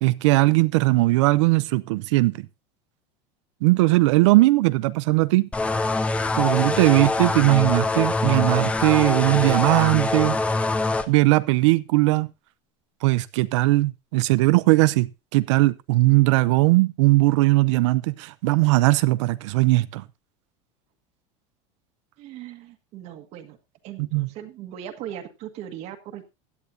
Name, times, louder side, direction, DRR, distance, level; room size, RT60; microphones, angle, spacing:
voice 1, 0.0-2.5 3.6-5.5 6.4-10.4 11.1-12.3 13.0-20.0 24.0-24.3, right 21 dB, 80° right, 0.6 m, -19 dB
sound 1, 5.5-11.1, left 3 dB, 10° left, 0.7 m, -24 dB
voice 2, 22.2-23.6 23.8-26.3, right 10 dB, 45° right, 1.6 m, -39 dB
16.5 x 10.5 x 2.7 m
cardioid pair, 160°, 15 cm